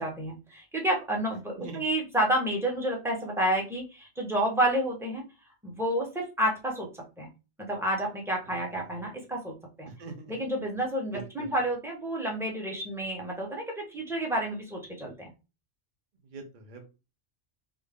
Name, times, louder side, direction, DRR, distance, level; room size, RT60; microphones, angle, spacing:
voice 1, 0.0-5.2 5.6-6.9 7.2-7.3 7.6-9.9 10.3-15.3, right 1 dB, ahead, -1 dB, 0.8 m, -30 dB
voice 2, 9.9-10.3 11.1-11.5 16.2-16.9, right 4 dB, 45° right, 4 dB, 0.9 m, -43 dB
3.9 x 2.1 x 3.5 m, 0.29 s
omnidirectional pair, 1.3 m